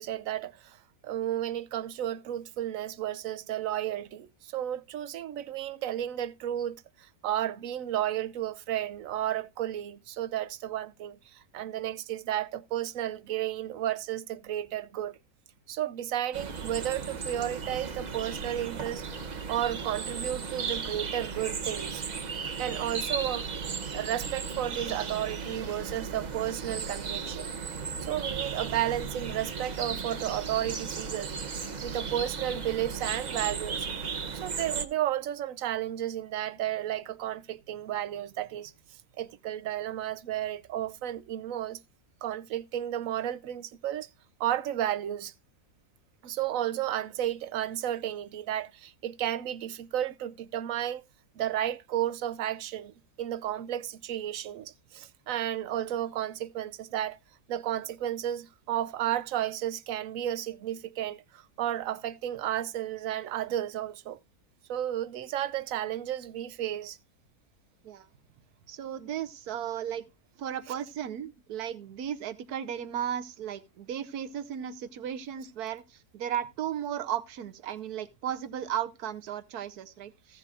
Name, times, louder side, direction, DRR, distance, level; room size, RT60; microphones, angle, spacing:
voice 1, 0.0-15.2 15.7-19.0 19.5-22.0 22.6-27.5 28.0-33.9 34.3-38.7 39.2-41.8 42.2-44.1 44.4-45.3 46.2-51.0 51.4-57.2 57.5-64.2 64.7-67.0 70.7-70.8, right 12 dB, 65° right, 1.0 m, -33 dB
sound 1, 16.3-34.9, right 5 dB, 40° right, 0.6 m, -35 dB
voice 2, 68.7-70.0 70.4-80.4, right 10 dB, 85° right, 1.4 m, -35 dB
15.5 x 7.5 x 2.4 m
omnidirectional pair, 1.6 m